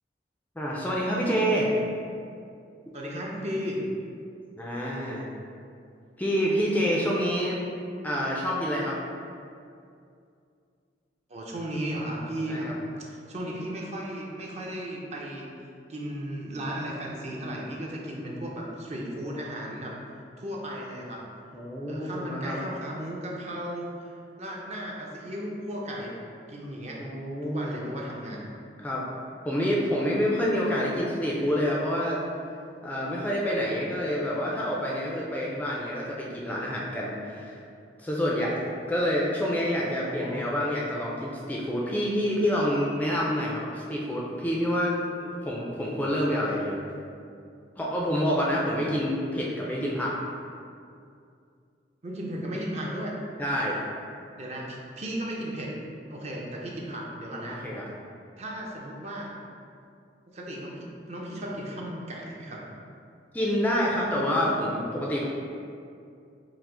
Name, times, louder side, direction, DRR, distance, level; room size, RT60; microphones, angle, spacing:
voice 1, 0.6-1.7 4.6-5.2 6.2-7.6 8.0-9.0 12.5-12.7 21.5-22.6 27.0-27.7 28.8-29.0 29.5-32.2 32.8-37.6 38.0-44.9 45.2-46.8 47.8-50.2 53.4-53.8 57.6-57.9 63.3-65.3, equal, 10° left, -4 dB, 0.4 m, -27 dB
voice 2, 2.9-3.8 11.3-15.5 15.9-19.9 20.4-21.2 21.9-24.1 24.4-26.1 26.5-27.0 27.4-28.5 40.0-40.5 52.0-53.1 54.4-55.7 56.1-57.6 58.4-59.3 60.3-62.6, equal, 40° right, -2 dB, 0.6 m, -35 dB
4.7 x 2.0 x 3.7 m, 2.4 s
head